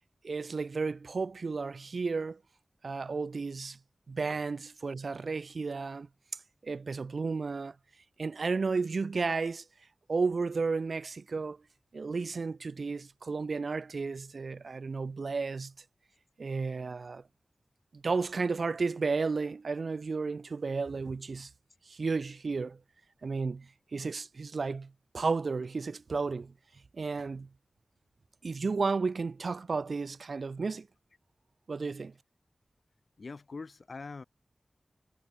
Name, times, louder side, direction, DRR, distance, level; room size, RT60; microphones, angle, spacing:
voice 1, 0.2-2.4 2.8-3.8 4.1-6.1 6.6-7.8 8.2-9.6 10.1-11.6 11.9-15.7 16.4-17.2 17.9-21.5 21.9-22.8 23.2-26.5 26.9-27.5 28.4-30.9 31.7-32.1, right 4 dB, 70° right, 0.3 m, -33 dB
voice 2, 33.2-34.2, left 4 dB, 65° left, 1.3 m, -43 dB
wide cardioid pair, 85°, 0 cm